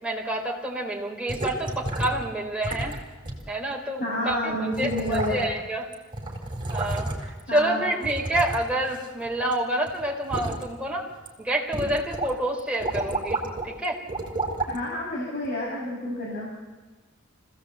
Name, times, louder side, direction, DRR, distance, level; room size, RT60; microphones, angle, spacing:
voice 1, 0.0-2.9 3.5-5.9 6.7-11.1 11.4-14.0, right 1 dB, 5° right, -2 dB, 4.1 m, -28 dB
sound 1, 1.3-2.2 2.6-3.0 3.2-3.4 4.3-4.4 4.7-5.7 5.9-7.4 8.0-9.5 9.9-10.6 11.1-11.3 11.7-12.3 12.6-13.7 14.1-14.8 15.4-15.5, right 2 dB, 25° right, 3.7 m, -31 dB
voice 2, 4.0-5.4 7.5-8.1 14.7-16.5, left 1 dB, 50° left, -4 dB, 5.6 m, -29 dB
25.5 x 16.5 x 8.1 m, 1.3 s
head